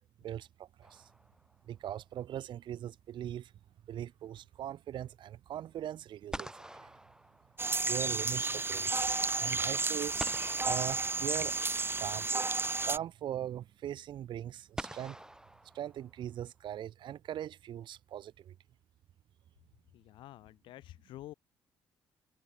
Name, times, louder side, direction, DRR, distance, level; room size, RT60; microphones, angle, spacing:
voice 1, 0.2-1.1 1.7-3.5 3.8-6.9 7.9-9.0 9.3-10.2 10.6-11.6 12.0-12.5 12.8-15.2 15.7-18.5, right 11 dB, 70° right, 3.2 m, -40 dB
sound 1, 0.8-1.7 5.8-5.9 6.3-8.0 10.2-11.8 13.1-13.2 14.8-16.4, right 1 dB, 10° right, 5.7 m, -46 dB
sound 2, 7.6-13.0, right 3 dB, 25° right, 1.3 m, -32 dB
voice 2, 19.9-21.3, left 15 dB, 75° left, 2.5 m, -49 dB
supercardioid pair, 55°, 8 cm